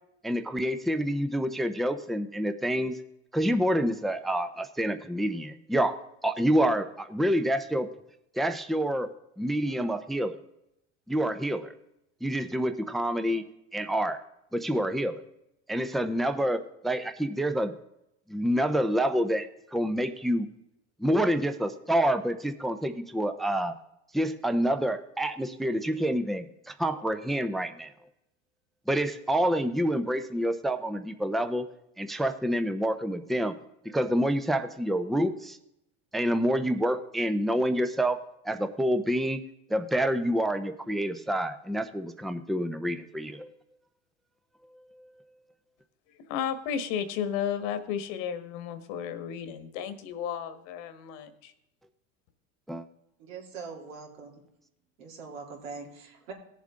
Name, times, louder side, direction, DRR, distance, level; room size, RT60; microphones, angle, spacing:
voice 1, 0.2-2.9 3.3-7.9 8.3-9.1 9.4-10.3 11.1-11.7 12.2-13.4 13.7-14.2 14.5-15.2 15.7-17.7 18.3-20.5 21.0-23.7 24.1-27.9 28.9-31.7 32.0-33.6 33.8-35.6 36.1-38.2 38.4-39.4 39.7-43.5 44.9-45.1 52.7-52.8, equal, ahead, 9 dB, 0.6 m, -27 dB
voice 2, 46.3-51.5, left 8 dB, 75° left, 10 dB, 1.6 m, -33 dB
voice 3, 53.2-54.4 55.0-56.3, right 4 dB, 85° right, 0 dB, 3.4 m, -42 dB
17.5 x 7.5 x 3.7 m, 0.81 s
supercardioid pair, 115°, 38 cm